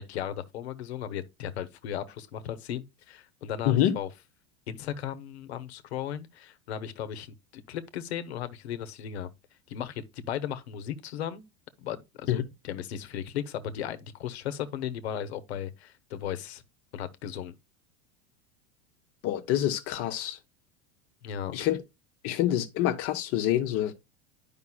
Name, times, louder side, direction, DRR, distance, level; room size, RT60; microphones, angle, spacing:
voice 1, 0.0-4.1 4.7-7.3 7.5-9.3 9.7-11.4 11.8-16.6 16.9-17.5 21.2-21.6, left 9 dB, 90° left, 0.8 m, -36 dB
voice 2, 3.7-4.0 12.3-12.4 19.2-20.4 21.5-21.8 22.2-23.9, left 12 dB, 50° left, 0.7 m, -26 dB
9.6 x 5.2 x 2.2 m
supercardioid pair, 115°, 31 cm